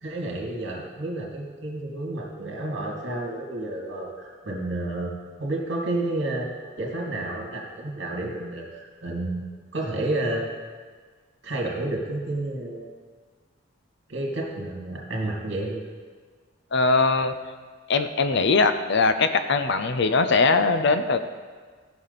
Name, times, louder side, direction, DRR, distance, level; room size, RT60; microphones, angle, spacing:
voice 1, 0.0-5.1 5.4-6.5 6.8-9.4 9.7-10.5 11.4-12.9 14.1-15.9, right 2 dB, 60° right, -1 dB, 2.4 m, -30 dB
voice 2, 16.7-17.3 17.9-21.2, left 3 dB, 60° left, 10 dB, 0.6 m, -21 dB
16.0 x 6.1 x 4.1 m, 1.5 s
head